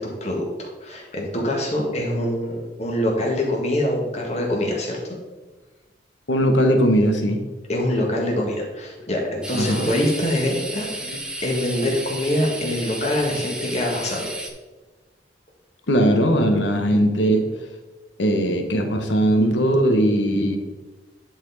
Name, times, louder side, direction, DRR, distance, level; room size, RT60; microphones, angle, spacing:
voice 1, 0.0-5.0 7.7-10.9 11.4-14.3, left 1 dB, 40° left, -1 dB, 1.6 m, -24 dB
voice 2, 6.3-7.4 9.5-9.9 11.1-11.2 15.9-17.5 18.2-20.6, equal, 85° left, 5 dB, 1.0 m, -19 dB
sound 1, 9.4-14.5, right 1 dB, 5° right, 0.7 m, -33 dB
10.5 x 4.2 x 4.0 m, 1.2 s
head